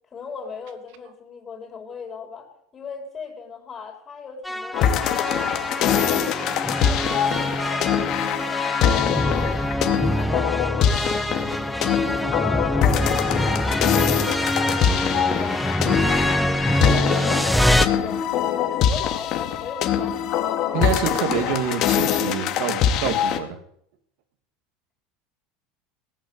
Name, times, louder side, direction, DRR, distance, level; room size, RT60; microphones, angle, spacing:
voice 1, 0.1-5.8 6.1-6.6 6.8-9.6 10.0-11.2 11.7-15.6 16.0-16.6 16.9-20.2 21.2-21.5, left 5 dB, 25° left, 3 dB, 5.3 m, -38 dB
sound 1, 4.4-17.9, equal, ahead, 0.9 m, -24 dB
sound 2, 4.7-23.4, left 9 dB, 50° left, 2.4 m, -23 dB
voice 2, 20.7-23.6, right 9 dB, 70° right, 8 dB, 2.8 m, -27 dB
18.0 x 9.2 x 8.4 m, 0.70 s
supercardioid pair, 125°, 0 cm